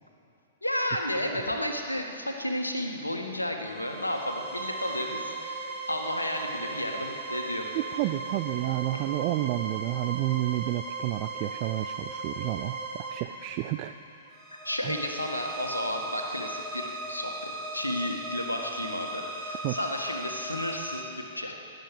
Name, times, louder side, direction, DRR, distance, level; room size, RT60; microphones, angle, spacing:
voice 1, 0.6-7.7 14.6-21.5, left 1 dB, 85° left, 3 dB, 1.7 m, -32 dB
sound 1, 3.6-21.0, right 2 dB, 10° left, 2.4 m, -37 dB
voice 2, 7.7-13.9 14.8-15.0 19.6-19.8, right 17 dB, 40° right, 9 dB, 0.4 m, -30 dB
18.5 x 7.7 x 9.4 m, 2.9 s
figure-of-eight pair, 110°, 0 cm